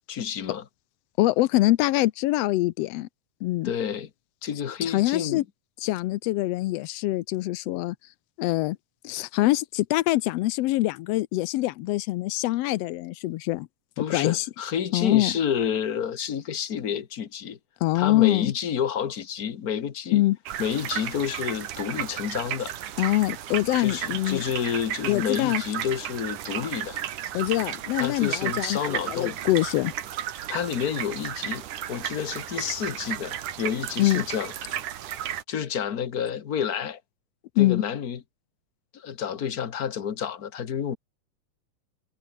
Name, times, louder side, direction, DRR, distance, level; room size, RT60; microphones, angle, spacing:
voice 1, 0.1-0.6 3.6-4.1 4.4-5.4 14.0-17.6 17.9-20.2 20.6-22.7 23.8-27.0 28.0-29.4 30.5-34.5 35.5-37.0 37.6-38.2 38.9-41.0, left 8 dB, 55° left, 1.0 m, -29 dB
voice 2, 1.2-3.1 3.4-3.7 4.8-5.4 5.8-7.9 8.4-8.8 9.0-13.7 14.1-14.4 14.9-15.3 17.8-18.5 20.1-20.4 23.0-24.4 25.1-25.6 27.3-29.9 34.0-34.2 37.6-37.8, left 17 dB, 80° left, 1.5 m, -24 dB
sound 1, 20.5-35.4, right 11 dB, 85° right, 3.1 m, -34 dB
omnidirectional pair, 3.5 m